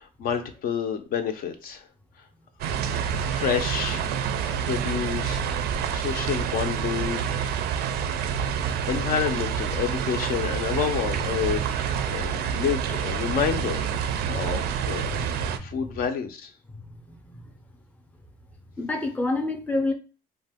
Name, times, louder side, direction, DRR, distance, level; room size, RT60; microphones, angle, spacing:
voice 1, 0.0-1.8 3.3-4.0 4.5-5.5 5.9-7.6 8.9-13.9 14.3-15.3 15.6-16.5, left 7 dB, 60° left, 6 dB, 0.5 m, -29 dB
sound 1, 2.6-15.6, right 8 dB, 70° right, 0.4 m, -28 dB
voice 2, 15.0-16.0 16.7-17.5 18.8-19.9, left 2 dB, 10° left, 5 dB, 0.5 m, -30 dB
2.5 x 2.1 x 3.5 m, 0.36 s
cardioid pair, 110°, 17 cm